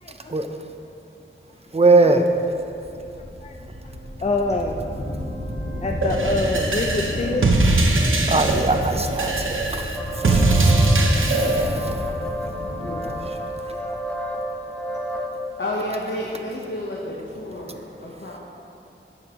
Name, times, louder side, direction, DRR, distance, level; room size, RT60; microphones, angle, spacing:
voice 1, 0.0-0.3 2.0-2.1 3.2-3.6 3.8-3.9 4.2-4.8 5.8-7.5 12.8-13.3, left 2 dB, 30° left, 3 dB, 0.4 m, -27 dB
voice 2, 1.7-2.2 8.3-9.9 10.2-10.7, right 3 dB, 30° right, 5 dB, 0.6 m, -20 dB
sound 1, 2.5-14.5, left 1 dB, 90° left, 1.6 m, -32 dB
sound 2, 6.0-11.7, right 2 dB, 70° right, 0.8 m, -20 dB
sound 3, 9.9-15.3, right 1 dB, 5° left, 0.8 m, -31 dB
voice 3, 15.6-18.4, left 1 dB, 60° left, -4 dB, 1.0 m, -30 dB
14.0 x 5.6 x 3.0 m, 2.8 s
wide cardioid pair, 65°, 21 cm